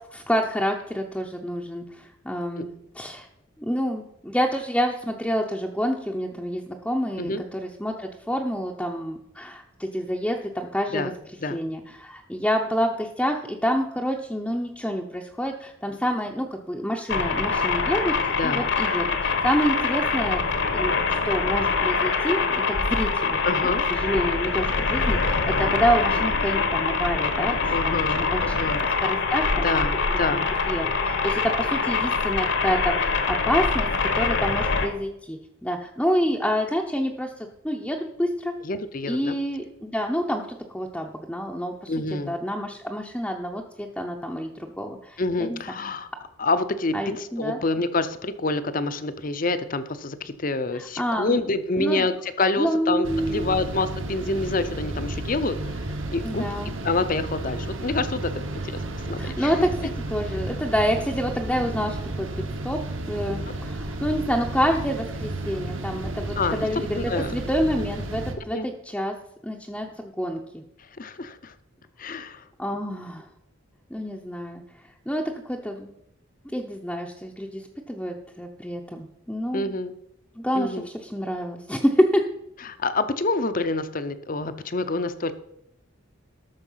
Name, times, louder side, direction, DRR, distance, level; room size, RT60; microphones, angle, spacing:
voice 1, 0.1-3.3 3.6-11.1 11.5-18.1 18.4-20.4 20.7-28.6 29.0-29.8 30.3-33.9 34.1-38.5 39.1-41.9 42.3-45.6 46.9-47.6 50.7-51.4 51.8-52.1 52.6-53.7 56.2-56.8 59.2-62.3 62.6-62.8 63.1-69.1 69.4-70.6 72.6-73.2 73.9-75.9 76.4-79.7 80.4-82.2, equal, 5° left, 0 dB, 0.6 m, -28 dB
sound 1, 17.1-34.9, left 4 dB, 60° left, 1.1 m, -24 dB
voice 2, 18.4-18.7 23.4-23.8 27.7-28.8 29.6-30.5 38.6-39.4 41.9-42.3 45.2-46.1 46.4-55.6 56.1-56.5 56.8-58.3 58.7-58.8 59.1-59.5 66.4-66.6 66.9-67.3 68.5-68.7 71.0-71.5 72.0-72.4 79.5-79.9 80.5-80.9 82.6-85.3, left 3 dB, 40° left, 12 dB, 0.7 m, -27 dB
sound 2, 53.0-68.3, right 2 dB, 70° right, 1.4 m, -32 dB
13.0 x 6.5 x 5.6 m, 0.80 s
head